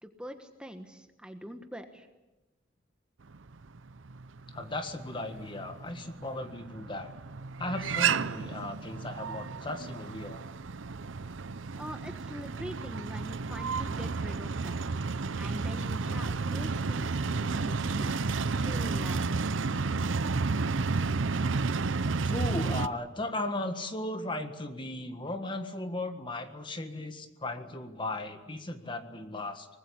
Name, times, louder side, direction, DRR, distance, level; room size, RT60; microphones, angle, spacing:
voice 1, 0.0-2.1 11.8-14.8 15.3-19.4, equal, 5° right, 6 dB, 1.3 m, -44 dB
sound 1, 3.3-22.9, right 4 dB, 85° right, 0.7 m, -32 dB
voice 2, 4.5-7.1 7.6-10.4 11.7-11.8 22.2-29.7, left 2 dB, 25° left, 7 dB, 1.6 m, -36 dB
24.0 x 20.5 x 8.6 m, 1.1 s
head